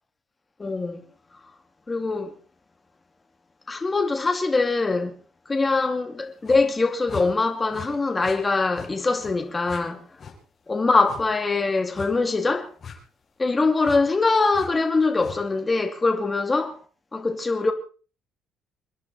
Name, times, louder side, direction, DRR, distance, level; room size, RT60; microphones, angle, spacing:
voice 1, 0.6-1.0 1.9-2.3 3.7-5.1 5.5-10.0 10.7-12.7 13.4-16.8 17.1-17.7, left 3 dB, 20° left, 2.4 m, -23 dB
sound 1, 6.4-6.6 7.1-7.3 7.7-7.9 8.2-8.4 8.7-8.9 9.2-9.3 9.6-9.8 10.2-10.4 11.0-11.2 11.9-12.1 12.8-13.0 13.8-14.0 14.5-14.7 15.2-15.4, left 6 dB, 35° left, 6.6 m, -39 dB
29.0 x 10.5 x 4.2 m
cardioid pair, 150°, 0 cm